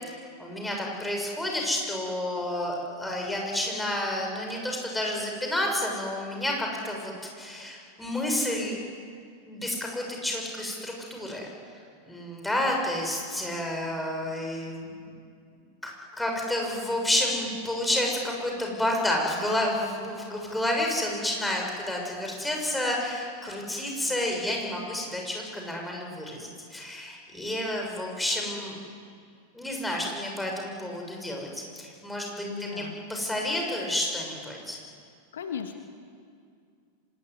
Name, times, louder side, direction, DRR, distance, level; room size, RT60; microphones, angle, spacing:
voice 1, 0.0-7.1 7.4-8.8 9.4-11.5 12.0-15.1 15.8-28.8 29.5-32.8 33.1-34.8, left 1 dB, 5° left, 0 dB, 6.7 m, -30 dB
voice 2, 32.4-33.0 35.3-35.8, left 7 dB, 65° left, 6 dB, 1.7 m, -36 dB
25.5 x 19.0 x 9.6 m, 2.2 s
figure-of-eight pair, 90°, 0 cm